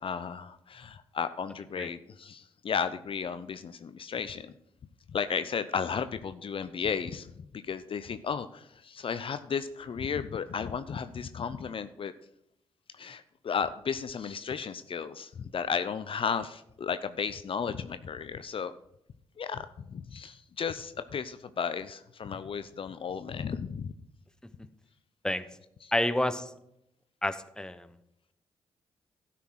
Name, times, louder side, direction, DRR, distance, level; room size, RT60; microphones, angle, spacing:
voice 1, 0.0-4.5 5.1-12.1 12.9-18.7 19.4-23.9 25.8-25.9, left 6 dB, 50° left, 12 dB, 0.6 m, -34 dB
voice 2, 25.9-26.5 27.2-27.9, left 1 dB, 5° left, 12 dB, 0.8 m, -29 dB
12.5 x 5.9 x 4.7 m, 0.79 s
hypercardioid pair, 45°, 12 cm